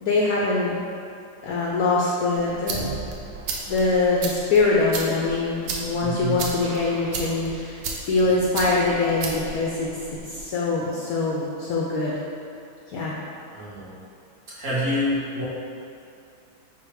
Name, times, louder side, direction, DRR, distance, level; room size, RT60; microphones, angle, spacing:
voice 1, 0.0-0.8 1.4-2.9 3.7-7.8 8.1-10.0 10.3-12.1 12.9-13.2, left 3 dB, 80° left, -4 dB, 0.8 m, -23 dB
sound 1, 2.3-10.4, right 3 dB, 85° right, 1.4 m, -34 dB
voice 2, 6.0-6.5 13.5-13.9 14.5-15.4, equal, 55° right, -9 dB, 1.3 m, -27 dB
4.8 x 2.1 x 4.6 m, 2.6 s
omnidirectional pair, 2.1 m